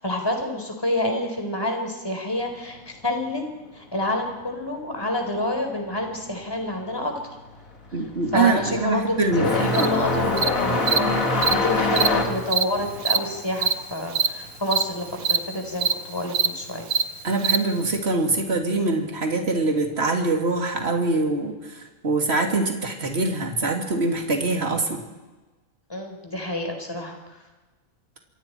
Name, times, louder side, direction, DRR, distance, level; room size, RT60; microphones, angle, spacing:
voice 1, 0.0-3.4 3.7-7.1 8.3-16.9 25.9-27.2, left 1 dB, 15° left, 3 dB, 4.2 m, -28 dB
sound 1, 6.7-7.0 7.4-15.7 16.0-17.0 18.0-18.1 18.9-19.0 20.7-20.9, left 2 dB, 70° left, 2.8 m, -25 dB
voice 2, 7.9-9.9 17.2-25.0, right 3 dB, 45° right, 2 dB, 2.8 m, -24 dB
Cricket, 9.7-9.9 10.4-10.5 10.9-11.0 11.4-11.5 11.9-12.1 12.5-12.6 13.0-13.2 13.6-13.7 14.1-14.3 14.7-14.8 15.2-15.4 15.8-15.9 16.3-16.5 16.9-17.0 17.4-17.6, right 6 dB, 65° right, 1.3 m, -21 dB
27.5 x 25.0 x 4.5 m, 1.2 s
omnidirectional pair, 1.5 m